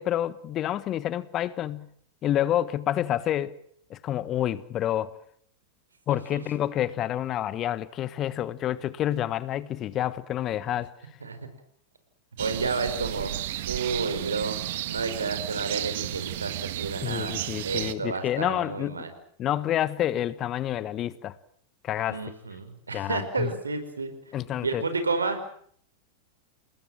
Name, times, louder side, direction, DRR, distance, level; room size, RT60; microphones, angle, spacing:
voice 1, 0.0-1.9 2.2-3.6 3.9-5.1 6.1-10.9 17.0-18.9 19.4-21.3 21.8-22.2 22.9-23.5 24.3-24.8, left 12 dB, 30° left, 1.2 m, -28 dB
sound 1, 12.4-17.9, right 15 dB, 55° right, 1.4 m, -33 dB
voice 2, 12.4-13.3 13.7-14.6 14.9-17.4 17.6-19.1 22.1-24.1 24.6-25.5, right 4 dB, 75° right, 4.7 m, -30 dB
29.0 x 19.5 x 7.7 m
figure-of-eight pair, 90°, 0 cm